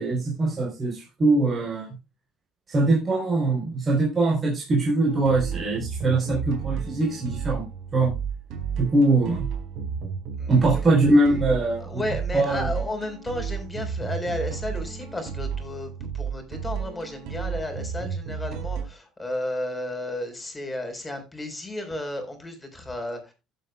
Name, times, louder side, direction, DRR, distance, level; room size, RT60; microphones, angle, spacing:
voice 1, 0.0-1.9 2.7-7.6 7.9-8.1 8.8-9.5 10.5-12.0 12.3-12.7, right 2 dB, 25° right, -1 dB, 3.7 m, -22 dB
sound 1, 5.1-18.8, right 6 dB, 70° right, 4.1 m, -32 dB
voice 2, 10.4-10.8 11.8-23.3, left 1 dB, 10° left, 5 dB, 4.0 m, -33 dB
15.5 x 7.9 x 2.2 m, 0.27 s
cardioid pair, 130°, 0 cm